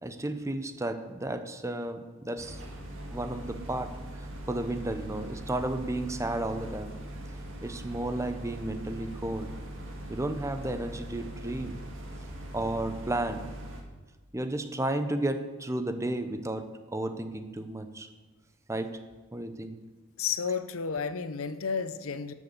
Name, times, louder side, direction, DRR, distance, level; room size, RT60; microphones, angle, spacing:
voice 1, 0.0-2.6 3.1-3.9 4.5-7.0 7.6-9.5 10.1-11.8 12.5-13.5 14.3-18.1 18.7-19.0 19.3-19.8, right 1 dB, 15° right, 9 dB, 0.7 m, -33 dB
sound 1, 2.4-13.8, right 1 dB, 65° right, 1.8 m, -41 dB
voice 2, 20.2-22.3, left 6 dB, 85° left, 12 dB, 0.7 m, -32 dB
12.0 x 6.5 x 7.0 m, 1.3 s
head